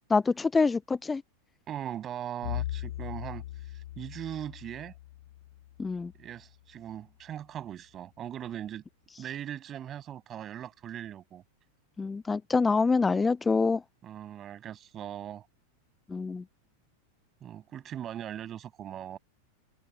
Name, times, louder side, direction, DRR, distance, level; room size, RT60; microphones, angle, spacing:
voice 1, 0.1-1.2 5.8-6.1 12.0-13.8 16.1-16.4, left 4 dB, 10° left, 0.7 m, -26 dB
voice 2, 1.7-4.9 6.2-8.8 9.2-11.4 14.0-15.5 17.4-19.2, right 10 dB, 30° right, 7.9 m, -40 dB
Bowed string instrument, 2.4-6.6, left 14 dB, 55° left, 1.4 m, -39 dB
open air
figure-of-eight pair, 90°, 0 cm